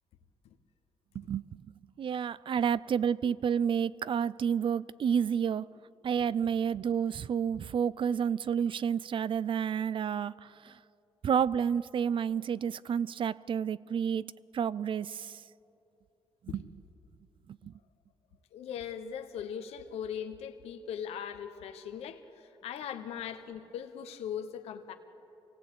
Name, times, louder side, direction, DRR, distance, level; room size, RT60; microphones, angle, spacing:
voice 1, 1.1-1.6 2.0-5.7 6.0-10.8 11.2-14.3 14.5-15.4 16.5-16.6 17.6-17.7, right 7 dB, 55° right, 0.5 m, -30 dB
voice 2, 18.5-24.9, left 8 dB, 90° left, 1.2 m, -39 dB
26.0 x 18.0 x 8.5 m
cardioid pair, 75°, 10 cm